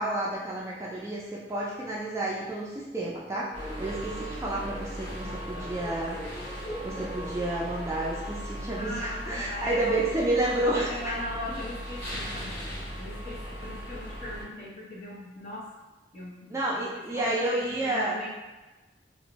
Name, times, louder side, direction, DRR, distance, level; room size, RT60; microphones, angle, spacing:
voice 1, 0.0-6.2 6.8-11.0 16.5-18.2, right 1 dB, 15° right, -5 dB, 0.3 m, -30 dB
sound 1, 3.5-14.4, equal, 15° left, 0.8 m, -38 dB
voice 2, 8.8-10.0 10.6-15.6 16.1-16.6 17.1-18.3, left 1 dB, 45° left, -4 dB, 0.6 m, -39 dB
2.5 x 2.1 x 2.9 m, 1.1 s
head